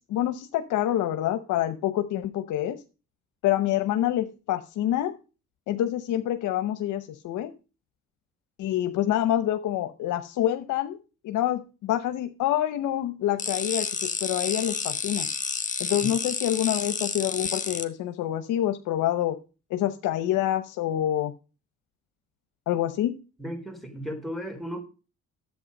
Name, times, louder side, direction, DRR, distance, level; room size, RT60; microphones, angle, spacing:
voice 1, 0.1-2.8 3.4-5.1 5.7-7.5 8.6-11.0 11.2-15.3 15.8-19.3 19.7-21.3 22.7-23.1, left 12 dB, 90° left, 0.9 m, -27 dB
sound 1, 13.4-17.8, left 4 dB, 25° left, 1.4 m, -30 dB
voice 2, 23.4-24.8, equal, ahead, 3.8 m, -35 dB
10.5 x 8.2 x 5.3 m
cardioid pair, 90°, 30 cm